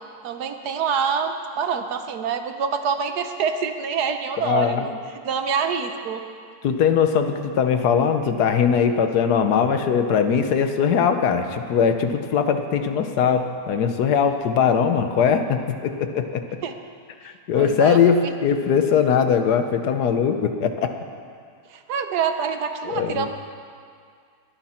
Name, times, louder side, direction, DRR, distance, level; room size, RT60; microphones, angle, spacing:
voice 1, 0.2-5.0 5.2-6.2 16.6-16.7 17.5-18.3 21.7-23.3, right 6 dB, 75° right, 7 dB, 1.4 m, -26 dB
voice 2, 4.4-4.9 6.6-16.6 17.2-20.9 22.9-23.3, left 7 dB, 75° left, 7 dB, 1.4 m, -20 dB
21.5 x 10.0 x 4.4 m, 2.2 s
omnidirectional pair, 1.7 m